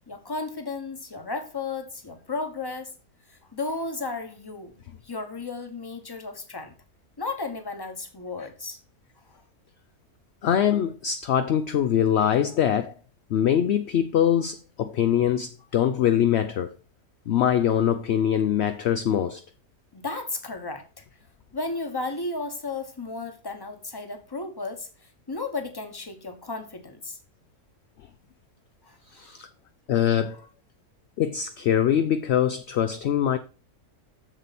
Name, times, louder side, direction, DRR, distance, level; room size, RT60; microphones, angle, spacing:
voice 1, 0.1-2.9 3.3-4.8 5.0-6.7 7.2-8.8 19.9-21.0 21.5-27.2 28.8-29.3 30.3-30.4, left 3 dB, 15° left, 1.1 m, -34 dB
voice 2, 10.4-12.9 13.3-16.7 17.3-19.4 29.1-29.5 29.9-30.4 31.2-33.4, left 9 dB, 65° left, 0.7 m, -23 dB
7.4 x 6.9 x 4.2 m
omnidirectional pair, 1.6 m